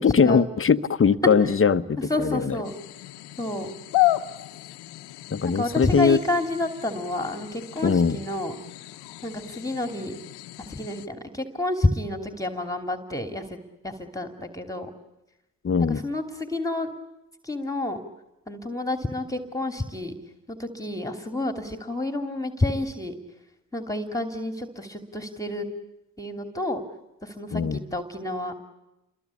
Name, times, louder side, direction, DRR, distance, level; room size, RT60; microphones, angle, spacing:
voice 1, 0.0-2.6 5.3-6.2 7.8-8.2 15.6-16.0 27.5-27.8, left 6 dB, 35° left, 11 dB, 1.2 m, -21 dB
voice 2, 2.0-2.7 3.4-3.7 5.4-8.5 9.2-10.1 10.7-13.6 13.8-14.9 15.8-16.9 17.4-18.0 18.5-20.1 20.5-23.1 23.7-25.7 26.2-26.8 27.2-28.5, left 2 dB, 10° left, 6 dB, 2.9 m, -29 dB
sound 1, 2.6-11.1, left 17 dB, 85° left, 1.2 m, -32 dB
29.0 x 22.5 x 8.5 m, 0.95 s
supercardioid pair, 60°, 39 cm